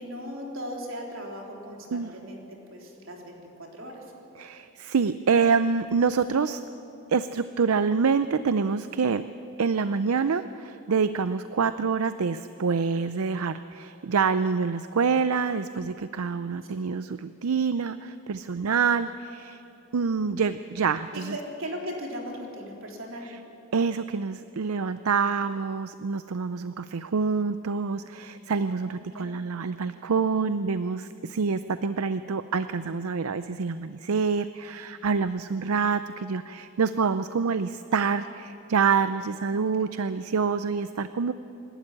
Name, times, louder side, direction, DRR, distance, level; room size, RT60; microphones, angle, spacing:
voice 1, 0.0-2.4 2.7-4.0 16.7-16.8 21.1-23.3 28.8-29.3 39.5-39.9, equal, 65° right, 0 dB, 3.7 m, -38 dB
voice 2, 4.4-6.6 7.1-9.2 9.6-19.6 19.9-21.4 23.2-23.4 23.7-41.3, right 5 dB, 85° right, 12 dB, 0.5 m, -26 dB
26.5 x 12.5 x 9.9 m, 2.9 s
head